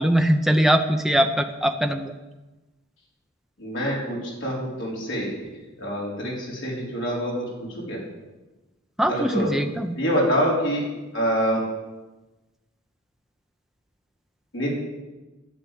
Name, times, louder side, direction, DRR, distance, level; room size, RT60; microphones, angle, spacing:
voice 1, 0.0-2.1 9.0-10.0, equal, ahead, 5 dB, 0.6 m, -21 dB
voice 2, 3.6-5.5 5.8-7.4 7.8-8.0 9.1-9.5 9.9-10.8 11.1-11.6 14.5-14.7, equal, 60° left, -4 dB, 4.7 m, -25 dB
11.5 x 7.8 x 8.8 m, 1.1 s
head